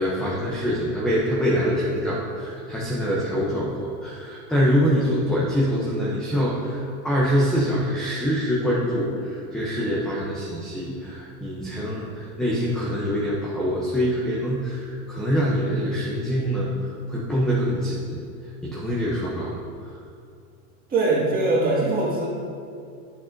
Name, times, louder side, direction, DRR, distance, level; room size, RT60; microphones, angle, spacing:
voice 1, 0.0-18.2 18.6-19.9, equal, ahead, -6 dB, 0.5 m, -25 dB
voice 2, 20.9-22.3, right 2 dB, 20° right, -5 dB, 1.8 m, -21 dB
10.0 x 8.7 x 2.5 m, 2.5 s
supercardioid pair, 145°, 48 cm